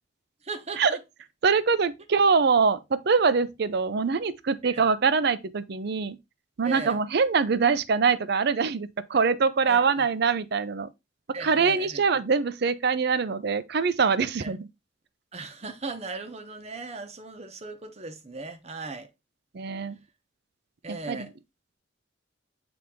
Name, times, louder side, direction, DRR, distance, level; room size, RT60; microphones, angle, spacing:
voice 1, 0.4-1.0 4.6-4.8 6.6-7.0 9.7-10.1 11.3-12.0 14.4-14.6 15.3-19.1 20.8-21.3, right 3 dB, 35° right, 0.9 m, -38 dB
voice 2, 1.4-6.2 6.6-10.9 11.4-14.7 19.5-20.0 20.9-21.3, right 5 dB, 55° right, 0.5 m, -24 dB
7.8 x 3.5 x 3.5 m
head